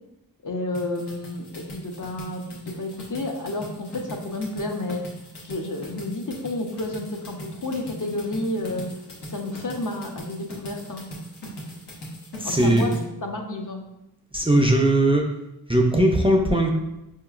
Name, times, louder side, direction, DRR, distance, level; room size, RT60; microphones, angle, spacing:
voice 1, 0.4-5.0 5.4-8.9 9.2-11.1 12.4-12.9 13.2-13.8, left 2 dB, 50° left, 2 dB, 0.6 m, -30 dB
sound 1, 0.7-13.0, equal, 80° left, 1.0 m, -40 dB
voice 2, 12.4-12.8 14.3-15.3 15.7-16.7, right 1 dB, 15° right, 1 dB, 0.4 m, -19 dB
4.8 x 2.9 x 2.4 m, 0.90 s
wide cardioid pair, 50°, 39 cm